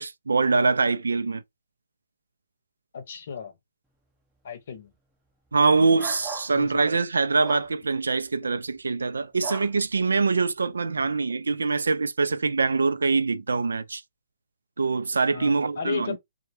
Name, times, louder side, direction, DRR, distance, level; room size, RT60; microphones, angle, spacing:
voice 1, 0.0-1.4 5.5-14.0 14.8-16.2, right 4 dB, 80° right, 0.3 m, -24 dB
voice 2, 2.9-3.5 4.4-4.9 6.5-7.0 11.0-11.1 15.3-16.2, left 6 dB, 55° left, 0.7 m, -35 dB
sound 1, 6.0-6.5 7.4-7.7 9.4-9.7, right 3 dB, 5° right, 0.5 m, -37 dB
2.2 x 2.1 x 2.9 m
figure-of-eight pair, 135°, 0 cm